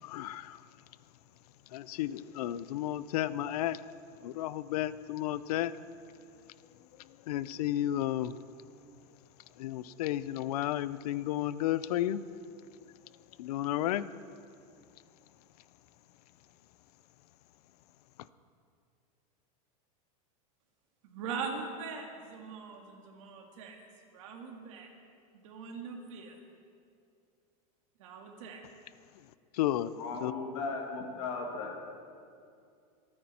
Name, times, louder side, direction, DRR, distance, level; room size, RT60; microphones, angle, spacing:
voice 1, 0.0-0.6 1.7-3.8 4.2-5.7 7.3-8.3 9.6-12.2 13.4-14.1 29.5-29.9 30.2-30.3, left 13 dB, 85° left, 17 dB, 0.6 m, -32 dB
voice 2, 21.0-23.8 24.1-24.9 25.4-26.4 28.0-28.6, right 5 dB, 60° right, 2 dB, 2.2 m, -41 dB
voice 3, 29.9-31.8, left 4 dB, 55° left, 1 dB, 2.5 m, -37 dB
25.5 x 9.7 x 4.4 m, 2.4 s
supercardioid pair, 180°, 19 cm